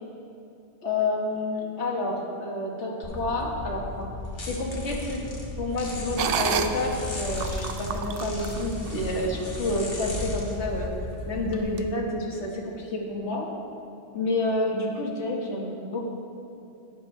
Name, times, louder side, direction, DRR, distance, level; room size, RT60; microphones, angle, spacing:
voice 1, 0.8-4.1 4.4-5.2 5.6-10.9 11.3-13.5 14.1-16.0, left 2 dB, 80° left, 0 dB, 1.5 m, -29 dB
sound 1, 3.0-11.6, left 2 dB, 55° left, 1.4 m, -35 dB
sound 2, 6.2-9.6 10.1-10.3 10.8-11.1 11.7-11.8, right 7 dB, 60° right, 0.7 m, -31 dB
12.0 x 9.4 x 3.1 m, 2.7 s
omnidirectional pair, 1.2 m